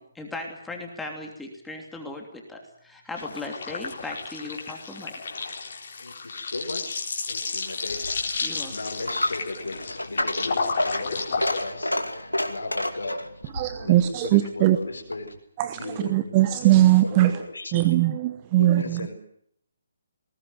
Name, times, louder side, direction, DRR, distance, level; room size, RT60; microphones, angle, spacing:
voice 1, 0.0-5.1 8.4-8.7, left 2 dB, 5° left, 2 dB, 3.0 m, -37 dB
sound 1, 3.2-11.6, left 4 dB, 50° left, 4.2 m, -32 dB
voice 2, 6.0-7.0 7.3-13.5 13.8-15.3 15.8-16.4 17.0-18.0 18.5-19.2, left 2 dB, 70° left, 0 dB, 4.7 m, -36 dB
Coin (dropping), 7.9-15.4, left 1 dB, 85° left, 2.5 m, -31 dB
voice 3, 13.5-14.8 15.6-15.8 16.1-17.3 17.7-19.0, right 15 dB, 25° right, 11 dB, 1.0 m, -20 dB
20.5 x 18.0 x 9.5 m, 0.69 s
figure-of-eight pair, 140°, 0 cm